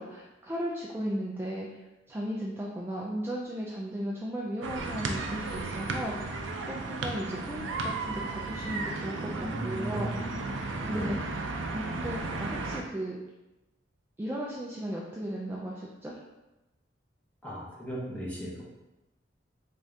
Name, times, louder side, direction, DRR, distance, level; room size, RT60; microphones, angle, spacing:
voice 1, 0.0-1.8 2.1-6.4 6.6-10.2 10.9-11.2 11.5-13.2 14.2-16.1, right 1 dB, 10° right, -4 dB, 0.3 m, -36 dB
sound 1, 4.6-12.8, right 3 dB, 80° right, 0.4 m, -34 dB
voice 2, 9.4-10.3 10.9-11.2 17.4-18.6, equal, 10° left, -6 dB, 0.9 m, -36 dB
3.6 x 2.7 x 3.2 m, 1.0 s
head